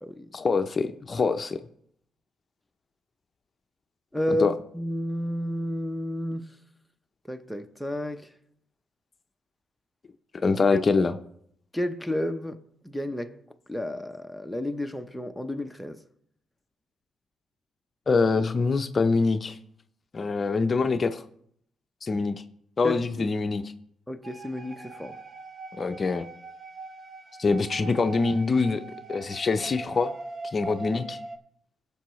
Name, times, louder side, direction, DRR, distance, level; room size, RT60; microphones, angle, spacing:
voice 1, 0.3-1.6 4.4-4.5 10.3-11.1 18.1-19.6 20.1-21.2 22.0-22.3 22.8-23.6 25.8-26.3 27.4-28.8 29.1-30.1 30.5-31.2, left 4 dB, 35° left, 0.6 m, -24 dB
voice 2, 4.1-4.5 4.7-6.5 7.3-8.3 10.7-10.8 11.7-12.6 12.8-13.4 13.7-16.0 22.8-23.3 24.1-25.2, left 1 dB, ahead, 0.7 m, -31 dB
sound 1, 24.2-31.4, right 3 dB, 40° right, 0.8 m, -41 dB
16.0 x 6.8 x 3.1 m
cardioid pair, 90°, 0 cm